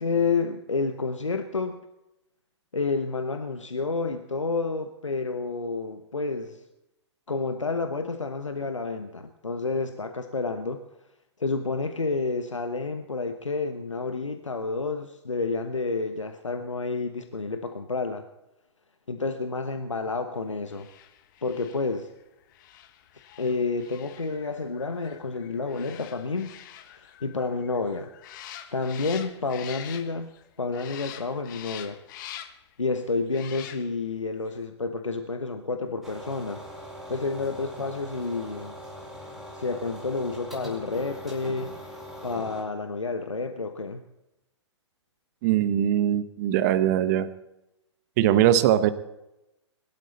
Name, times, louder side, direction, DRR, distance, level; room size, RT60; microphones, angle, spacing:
voice 1, 0.0-1.8 2.7-6.6 7.3-10.8 11.4-18.2 19.1-20.9 21.4-22.1 23.4-26.5 26.9-28.1 28.7-32.0 32.8-36.6 37.1-38.8 39.5-44.0, left 4 dB, 85° left, 7 dB, 1.1 m, -30 dB
sound 1, 20.7-30.4 30.7-32.7 33.3-34.1 34.5-34.6, left 11 dB, 40° left, 1.2 m, -45 dB
sound 2, 36.0-42.6, equal, ahead, 5.1 m, -41 dB
voice 2, 45.4-47.3 48.2-48.9, right 11 dB, 35° right, 13 dB, 1.1 m, -21 dB
22.0 x 12.0 x 4.2 m, 0.91 s
figure-of-eight pair, 120°, 15 cm